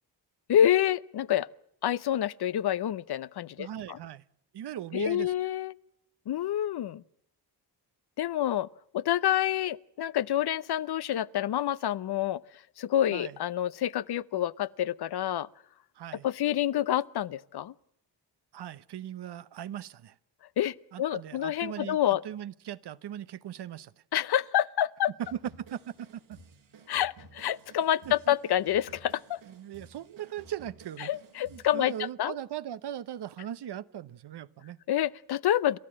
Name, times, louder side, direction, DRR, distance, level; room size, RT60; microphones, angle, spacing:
voice 1, 0.5-1.5 1.8-4.0 4.9-5.8 6.3-7.0 8.2-8.7 8.9-12.4 12.8-15.5 16.2-17.7 20.6-22.2 24.1-25.1 26.9-29.4 31.0-31.9 32.2-32.4 34.9-35.8, left 11 dB, 60° left, 0.7 m, -28 dB
voice 2, 3.6-4.2 4.5-5.3 13.1-13.4 15.9-16.3 18.5-20.2 20.9-22.0 22.2-23.9 25.3-26.4 28.0-28.3 29.5-31.1 31.5-34.8, right 11 dB, 65° right, 0.9 m, -39 dB
sound 1, 25.2-32.1, right 4 dB, 85° right, 4.9 m, -54 dB
29.5 x 13.0 x 7.6 m
cardioid pair, 85°, 43 cm